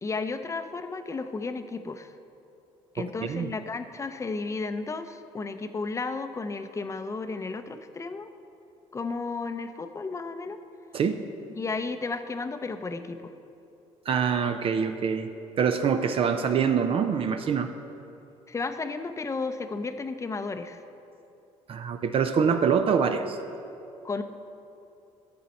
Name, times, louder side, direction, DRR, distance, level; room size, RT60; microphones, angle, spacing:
voice 1, 0.0-2.1 2.9-8.3 8.9-10.6 11.6-13.3 18.5-20.8 24.0-24.2, left 4 dB, 25° left, 9 dB, 0.6 m, -33 dB
voice 2, 3.0-3.5 10.9-11.2 14.1-15.3 15.6-17.7 21.7-23.4, right 6 dB, 45° right, 7 dB, 0.5 m, -25 dB
12.0 x 7.5 x 4.2 m, 2.7 s
supercardioid pair, 85°, 13 cm